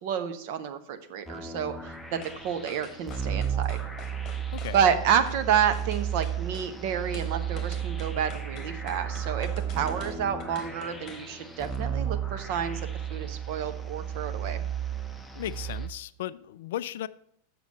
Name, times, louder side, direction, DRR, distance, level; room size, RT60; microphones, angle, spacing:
voice 1, 0.0-3.8 4.7-12.8 13.1-14.6, right 8 dB, 45° right, 0.9 m, -29 dB
sound 1, 1.3-15.9, right 8 dB, 5° left, 0.8 m, -34 dB
sound 2, 2.2-2.4 2.7-5.4 5.7-6.7 7.1-11.3 11.6-11.8, left 5 dB, 30° left, 1.2 m, -47 dB
voice 2, 15.3-17.1, left 12 dB, 55° left, 0.3 m, -35 dB
7.2 x 6.0 x 7.5 m
figure-of-eight pair, 90°, 0 cm